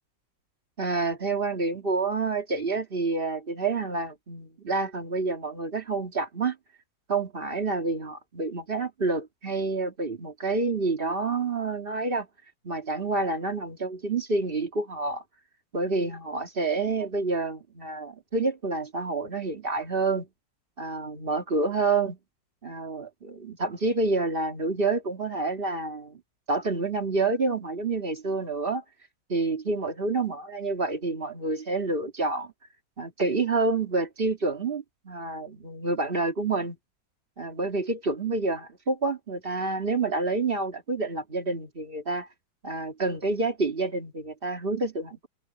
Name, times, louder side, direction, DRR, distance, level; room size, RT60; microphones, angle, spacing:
voice 1, 0.8-6.6 7.1-12.3 12.6-15.2 15.7-20.3 20.8-22.2 22.6-26.2 26.5-28.8 29.3-32.5 33.0-36.8 37.4-42.3 42.6-45.3, right 3 dB, 30° right, 2.4 m, -28 dB
omnidirectional pair, 2.0 m